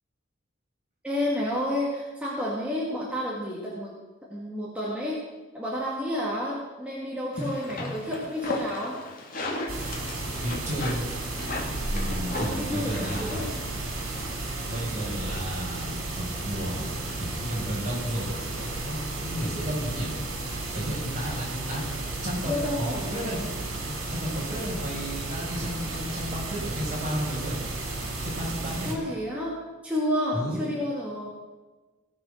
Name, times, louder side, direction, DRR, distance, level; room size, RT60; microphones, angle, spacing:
voice 1, 1.0-3.9 4.3-5.2 5.5-9.0 12.3-13.5 22.4-23.4 28.8-29.6 29.8-31.3, left 1 dB, 5° right, -6 dB, 2.0 m, -30 dB
sound 1, 7.3-15.3, left 2 dB, 45° left, 2.1 m, -36 dB
sound 2, 9.7-28.9, right 2 dB, 80° right, 3.4 m, -33 dB
voice 2, 10.4-11.1 11.9-13.4 14.7-16.9 17.2-20.1 20.7-21.8 22.2-23.4 24.1-27.6 28.2-28.9 30.3-30.7, equal, 40° right, -4 dB, 5.6 m, -33 dB
18.0 x 7.5 x 6.4 m, 1.3 s
head